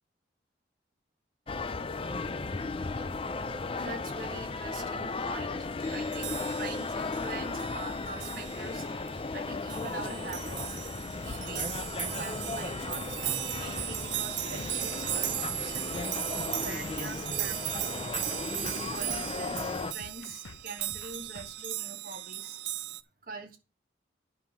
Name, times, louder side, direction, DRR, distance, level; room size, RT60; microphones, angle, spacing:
sound 1, 1.5-19.9, left 3 dB, 30° left, 0.4 m, -35 dB
voice 1, 3.8-8.9 9.3-10.8 11.2-11.9 12.2-16.0 16.6-18.4 18.9-22.6 23.2-23.6, right 3 dB, 45° right, 1.6 m, -44 dB
sound 2, 5.8-23.0, right 14 dB, 65° right, 0.6 m, -37 dB
sound 3, 12.8-21.7, left 3 dB, 85° left, 1.0 m, -49 dB
9.6 x 5.6 x 5.9 m
head